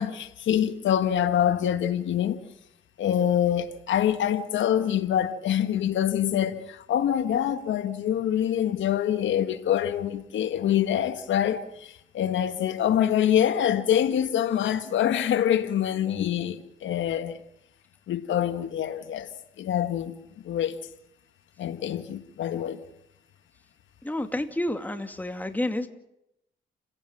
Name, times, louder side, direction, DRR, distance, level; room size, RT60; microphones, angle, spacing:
voice 1, 0.0-2.4 3.0-17.4 18.1-19.3 19.6-20.1 20.4-20.8 21.6-22.8, left 10 dB, 70° left, 1.6 m, -25 dB
voice 2, 24.0-25.9, left 1 dB, 10° left, 2.4 m, -29 dB
29.5 x 17.0 x 7.5 m
cardioid pair, 90°, 20 cm